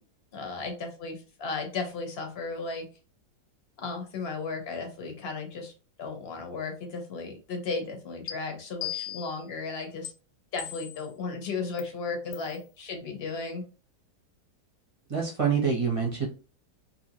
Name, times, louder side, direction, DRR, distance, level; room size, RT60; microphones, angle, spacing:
voice 1, 0.3-2.9 3.8-5.7 6.0-10.1 10.5-13.6, left 4 dB, 50° left, 3 dB, 0.9 m, -35 dB
sound 1, 8.3-8.4 8.8-9.4 10.0-10.1 10.6-11.1 11.8-11.9 12.3-12.5, left 10 dB, 90° left, 1.2 m, -37 dB
voice 2, 15.1-16.3, right 6 dB, 35° right, -2 dB, 0.5 m, -26 dB
2.8 x 2.7 x 2.7 m, 0.34 s
omnidirectional pair, 1.8 m